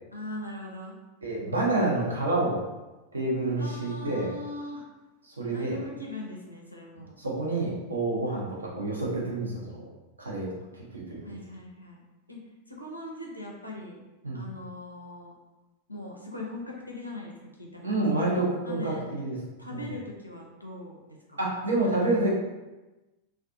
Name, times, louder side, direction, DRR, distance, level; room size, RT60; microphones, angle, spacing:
voice 1, 0.1-0.9 3.5-4.9 5.5-7.2 11.2-12.0 12.3-12.4 12.7-14.0 14.3-15.3 15.9-17.3 17.6-18.2 18.6-19.0 19.6-21.0 21.3-21.4 21.8-22.0, left 2 dB, 90° left, -2 dB, 0.5 m, -40 dB
voice 2, 1.2-2.6 3.1-4.3 5.3-5.8 7.2-9.9 10.2-10.5 11.1-11.4 14.2-14.4 17.8-19.4 19.7-19.8 21.4-22.3, right 2 dB, 75° right, -3 dB, 0.6 m, -28 dB
2.4 x 2.3 x 2.5 m, 1.1 s
figure-of-eight pair, 90°, 0 cm